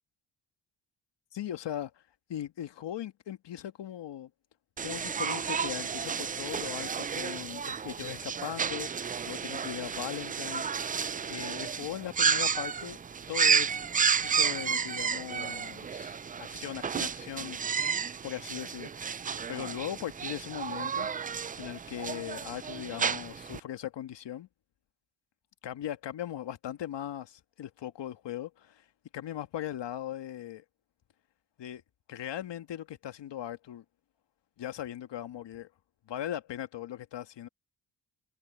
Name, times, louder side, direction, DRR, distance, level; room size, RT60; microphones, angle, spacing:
voice 1, 1.3-2.0 2.3-4.3 4.8-10.7 11.3-13.0 13.3-13.8 14.2-17.9 18.2-19.2 19.5-21.1 21.6-24.5 25.6-28.9 29.1-30.6 31.6-31.8 32.1-33.8 34.6-35.7 36.1-37.5, left 11 dB, 70° left, 1.8 m, -39 dB
sound 1, 4.8-23.6, right 6 dB, 20° right, 0.3 m, -32 dB
cardioid pair, 65°, 44 cm